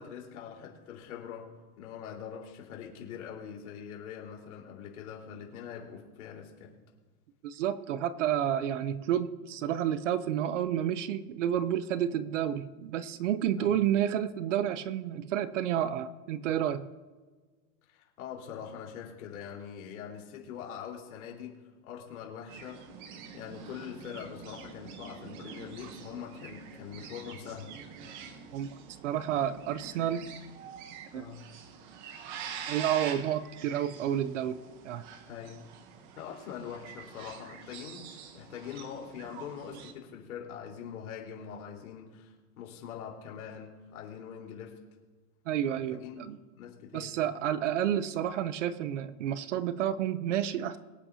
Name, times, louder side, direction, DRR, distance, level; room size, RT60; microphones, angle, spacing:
voice 1, 0.0-6.7 13.6-13.8 17.9-27.7 31.1-31.5 35.3-35.7 36.2-44.8 45.7-46.2 46.6-47.2, left 8 dB, 65° left, -1 dB, 4.1 m, -43 dB
voice 2, 7.4-16.9 28.5-28.8 29.0-30.3 31.1-31.2 32.7-35.0 45.5-46.4 46.9-50.8, right 10 dB, 50° right, 14 dB, 0.7 m, -30 dB
sound 1, 22.5-39.9, right 7 dB, 30° right, 1.0 m, -46 dB
24.5 x 8.8 x 2.8 m, 1.3 s
supercardioid pair, 175°, 46 cm